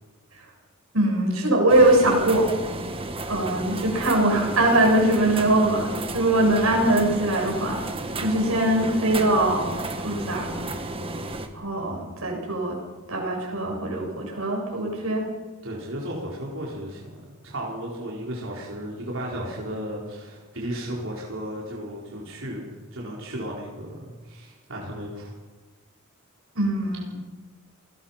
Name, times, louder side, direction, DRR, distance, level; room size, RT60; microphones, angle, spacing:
voice 1, 0.9-2.5 3.3-7.8 8.2-9.8 10.0-10.7 11.5-12.8 13.1-15.3 26.5-27.1, right 1 dB, 80° right, 0 dB, 7.0 m, -22 dB
sound 1, 1.7-11.5, right 2 dB, 25° right, 1.7 m, -33 dB
voice 2, 15.6-25.3, equal, 65° right, -4 dB, 4.7 m, -34 dB
29.5 x 20.0 x 5.9 m, 1.3 s
head